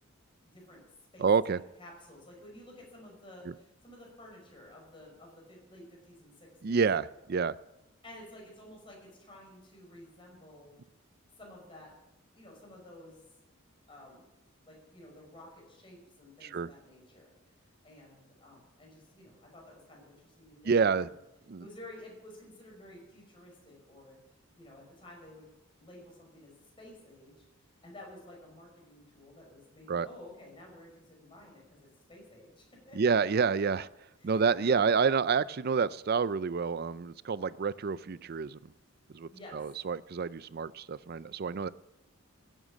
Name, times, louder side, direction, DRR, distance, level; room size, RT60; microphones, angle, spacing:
voice 1, 0.5-0.8 1.1-6.8 8.0-10.7 11.4-11.9 12.3-13.2 13.9-14.3 14.6-17.3 17.8-21.2 21.6-24.2 24.6-25.5 25.8-27.3 27.8-33.2 34.2-34.4 34.8-34.9 39.3-39.7, left 1 dB, 25° left, -1 dB, 5.4 m, -52 dB
voice 2, 1.2-1.6 6.6-7.5 16.4-16.7 20.7-21.1 21.5-21.6 29.9-30.1 32.9-33.9 34.2-38.6 39.1-41.7, right 5 dB, 45° right, 17 dB, 0.4 m, -28 dB
16.0 x 9.1 x 7.3 m, 0.93 s
head